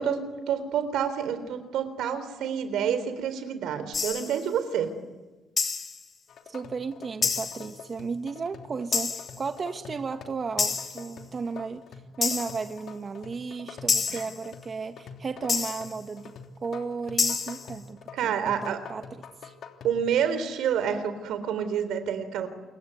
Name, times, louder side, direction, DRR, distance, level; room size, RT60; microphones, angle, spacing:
voice 1, 0.0-4.9 14.1-14.2 18.1-18.8 19.8-22.5, right 8 dB, 85° right, 11 dB, 3.8 m, -28 dB
sound 1, 3.9-4.4 5.6-6.0 7.2-7.7 8.9-9.4 10.6-11.1 12.2-12.7 13.9-14.4 15.5-16.0 17.2-17.7, left 5 dB, 40° left, 3.8 m, -28 dB
sound 2, 6.3-20.0, left 5 dB, 65° left, 3.2 m, -46 dB
voice 2, 6.5-11.8 12.2-16.3 16.6-19.5, right 5 dB, 40° right, 8 dB, 1.4 m, -34 dB
28.0 x 22.5 x 9.5 m, 1.2 s
cardioid pair, 90°, 0 cm